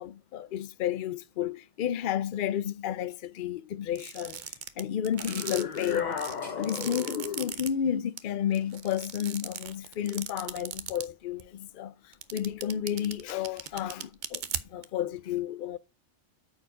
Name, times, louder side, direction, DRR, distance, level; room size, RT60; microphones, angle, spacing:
voice 1, 0.0-4.4 4.8-6.2 6.6-14.4 14.7-15.8, left 10 dB, 60° left, 0.5 m, -32 dB
sound 1, 3.9-7.7 8.2-8.3 8.5-11.0 11.4-11.5 12.1-14.8, right 8 dB, 55° right, 0.5 m, -37 dB
sound 2, 5.1-9.1 9.5-10.7, left 1 dB, 10° left, 2.1 m, -54 dB
sound 3, 5.3-7.6, left 6 dB, 40° left, 0.8 m, -35 dB
8.8 x 4.7 x 4.9 m
omnidirectional pair, 1.4 m